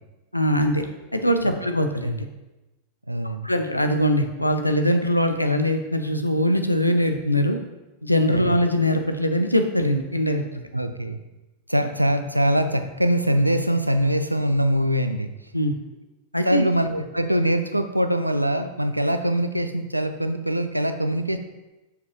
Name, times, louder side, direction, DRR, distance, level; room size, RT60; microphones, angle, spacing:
voice 1, 0.3-0.8 1.1-2.3 3.4-7.6 8.0-10.4 15.5-15.7 16.3-16.7, equal, 85° left, 6 dB, 0.5 m, -22 dB
voice 2, 3.1-3.5 8.3-8.5 10.7-11.2 11.7-15.3 16.5-21.4, right 1 dB, 90° right, 9 dB, 0.4 m, -23 dB
6.6 x 5.0 x 3.0 m, 1.0 s
figure-of-eight pair, 90°, 0 cm